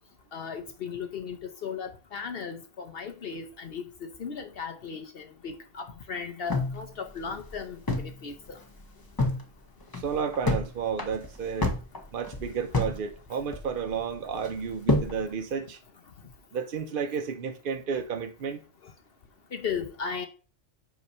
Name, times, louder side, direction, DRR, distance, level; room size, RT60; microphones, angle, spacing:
voice 1, 0.3-8.6 19.5-20.3, left 6 dB, 55° left, 0.9 m, -36 dB
sound 1, 6.5-8.2 8.5-8.6 8.9-9.4 9.8-10.7 11.0-13.0 13.3-13.9 14.4-15.2, left 2 dB, 20° left, 0.8 m, -28 dB
voice 2, 9.9-11.7 12.1-15.8 16.5-18.6, right 6 dB, 55° right, 0.7 m, -32 dB
8.0 x 2.9 x 5.4 m
omnidirectional pair, 1.3 m